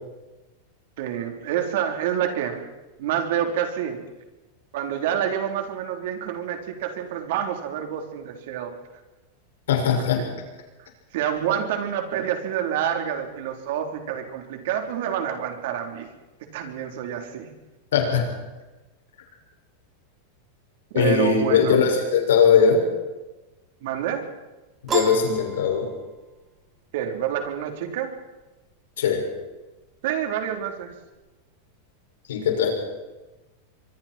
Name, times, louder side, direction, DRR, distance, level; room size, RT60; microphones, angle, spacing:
voice 1, 1.0-2.7 3.0-4.0 4.7-8.7 9.8-10.4 10.8-16.1 16.5-17.5 20.9-21.8 23.8-24.3 26.9-28.1 30.0-30.9, right 9 dB, 65° right, 4 dB, 3.7 m, -28 dB
voice 2, 9.7-10.2 17.9-18.3 20.9-22.9 24.8-25.9 29.0-29.2 32.3-32.7, left 6 dB, 90° left, 2 dB, 6.1 m, -20 dB
Piano, 24.9-26.4, right 6 dB, 25° right, 3.2 m, -30 dB
24.5 x 23.5 x 4.5 m, 1.1 s
supercardioid pair, 140°, 0 cm